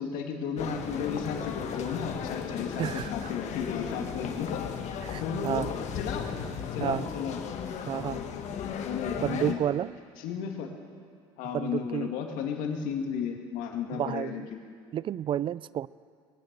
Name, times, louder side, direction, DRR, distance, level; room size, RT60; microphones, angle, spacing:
voice 1, 0.0-2.9 3.1-4.6 5.1-6.3 6.7-7.4 8.8-9.6 10.2-10.7 11.4-14.6, left 7 dB, 75° left, 3 dB, 2.0 m, -34 dB
sound 1, 0.6-9.5, left 7 dB, 55° left, 1.5 m, -35 dB
voice 2, 2.8-3.3 5.0-5.7 6.8-7.1 7.9-8.2 9.2-9.9 11.5-12.1 13.9-14.5 14.9-15.9, right 10 dB, 40° right, 21 dB, 0.4 m, -31 dB
21.0 x 10.0 x 6.7 m, 2.2 s
supercardioid pair, 80°, 14 cm